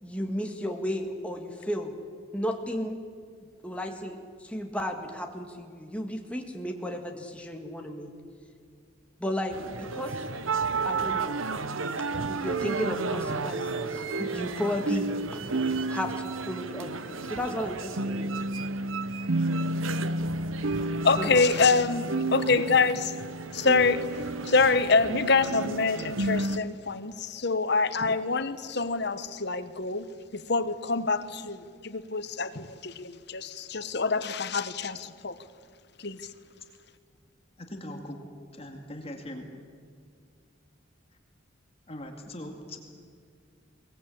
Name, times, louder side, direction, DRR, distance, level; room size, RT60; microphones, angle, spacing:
voice 1, 0.0-1.9 2.3-3.0 3.6-8.1 9.2-10.2 10.8-11.4 12.0-15.4 15.9-18.3 21.2-21.4 28.1-28.2, equal, 5° left, 1.9 m, -34 dB
sound 1, 9.5-26.6, right 3 dB, 80° right, 1.1 m, -31 dB
voice 2, 21.0-23.0 23.5-24.1 24.4-31.6 31.8-35.3 36.0-36.2, left 4 dB, 55° left, 1.1 m, -26 dB
voice 3, 37.6-38.2 38.5-39.5 41.9-42.8, left 1 dB, 30° left, 2.3 m, -40 dB
22.5 x 20.0 x 8.6 m
head